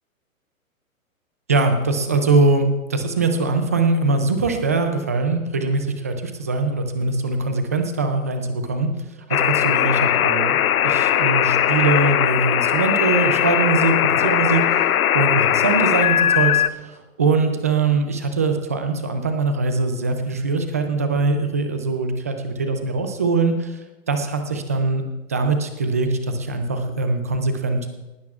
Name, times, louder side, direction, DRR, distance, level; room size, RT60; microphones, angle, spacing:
voice 1, 1.5-8.9 9.3-10.6 10.8-23.8 24.1-25.0 25.3-27.9, right 3 dB, 15° right, 6 dB, 0.3 m, -22 dB
sound 1, 9.3-16.7, left 10 dB, 80° left, 0.6 m, -19 dB
19.0 x 15.5 x 2.4 m, 1.0 s
hypercardioid pair, 130°, 42 cm